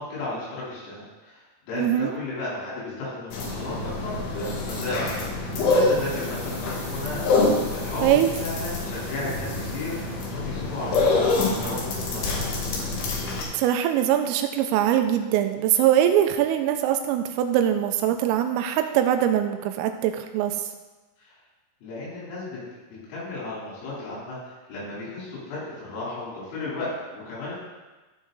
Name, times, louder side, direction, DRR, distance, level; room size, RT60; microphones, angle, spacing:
voice 1, 0.0-9.9 10.3-12.5 21.2-21.3 21.8-22.6 22.9-27.5, left 2 dB, 85° left, -7 dB, 6.3 m, -34 dB
voice 2, 1.7-2.1 8.0-8.3 13.5-20.6, right 11 dB, 90° right, 7 dB, 3.3 m, -22 dB
sound 1, 3.3-13.4, left 3 dB, 65° left, 3.0 m, -26 dB
sound 2, 5.7-10.5 10.8-10.9, left 2 dB, 35° left, 3.8 m, -43 dB
14.5 x 4.9 x 3.9 m, 1.2 s
omnidirectional pair, 5.9 m